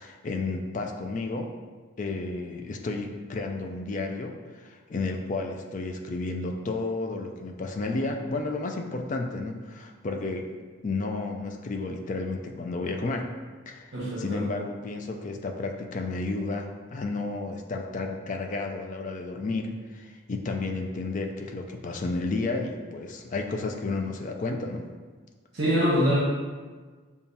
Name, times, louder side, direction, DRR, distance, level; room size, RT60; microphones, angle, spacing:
voice 1, 0.0-1.5 2.0-10.5 10.8-13.3 13.7-24.9, left 3 dB, 35° left, 3 dB, 0.4 m, -32 dB
voice 2, 13.9-14.4 25.5-26.2, equal, 50° right, -7 dB, 0.9 m, -24 dB
6.9 x 2.4 x 2.7 m, 1.4 s
head